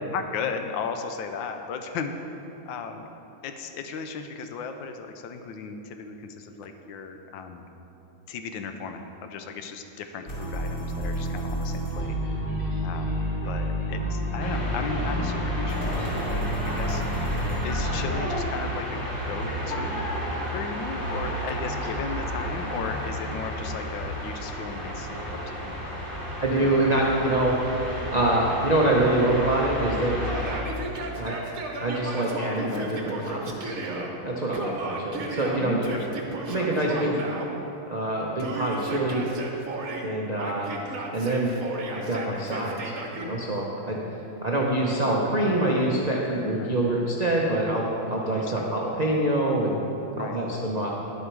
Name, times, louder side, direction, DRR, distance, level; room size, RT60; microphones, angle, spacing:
voice 1, 0.1-2.1 2.7-3.1 3.4-7.6 8.3-12.2 12.8-13.2 13.4-17.0 17.6-20.1 20.5-26.0 26.6-26.8 35.6-36.3 37.1-37.3 46.6-46.8 48.6-48.7 50.1-50.6, left 5 dB, 75° left, 6 dB, 1.3 m, -36 dB
sound 1, 10.3-18.0, equal, 55° left, 3.1 m, -29 dB
sound 2, 14.4-30.6, equal, 15° left, 2.0 m, -32 dB
voice 2, 26.4-27.8 28.1-30.2 31.0-31.4 31.8-35.8 36.5-37.2 37.9-39.3 40.0-40.7 41.1-41.5 41.9-44.0 44.4-49.8 50.2-50.9, right 1 dB, 75° right, -3 dB, 0.3 m, -25 dB
Yell, 30.2-34.1 34.5-37.5 38.4-40.1 40.4-43.3, right 2 dB, 50° right, 1.1 m, -35 dB
11.0 x 7.1 x 4.6 m, 3.0 s
omnidirectional pair, 2.2 m